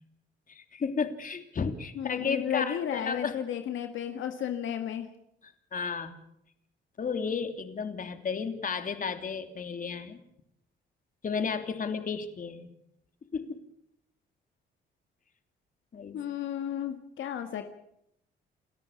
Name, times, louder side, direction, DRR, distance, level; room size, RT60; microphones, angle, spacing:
voice 1, 0.5-3.4 5.4-6.1 7.0-10.2 11.2-12.7 13.3-13.6 15.9-16.2, left 5 dB, 45° left, 7 dB, 2.9 m, -33 dB
voice 2, 2.0-5.1 16.1-17.6, left 9 dB, 75° left, 6 dB, 1.8 m, -33 dB
29.0 x 14.0 x 7.1 m, 0.76 s
cardioid pair, 90°, 20 cm